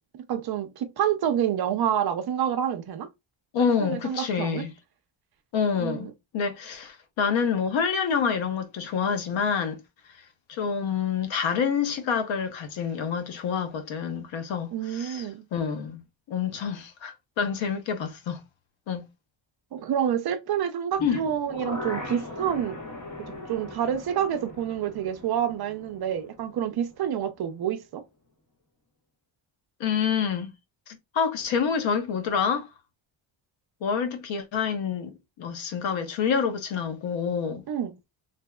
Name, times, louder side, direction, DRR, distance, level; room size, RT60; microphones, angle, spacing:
voice 1, 0.3-3.1 3.6-4.6 5.8-6.1 14.7-15.4 19.7-22.8 23.2-28.0 37.7-37.9, right 9 dB, 55° right, 0.6 m, -28 dB
voice 2, 3.5-4.7 5.5-6.1 6.3-9.8 10.5-15.3 15.5-16.0 16.3-18.4 18.9-19.0 21.0-21.2 29.8-30.5 30.9-32.7 33.8-37.6, left 6 dB, 75° left, 0.8 m, -27 dB
sound 1, 20.9-26.9 27.3-27.4, left 2 dB, 40° left, 1.1 m, -40 dB
3.4 x 2.8 x 2.2 m
cardioid pair, 145°, 47 cm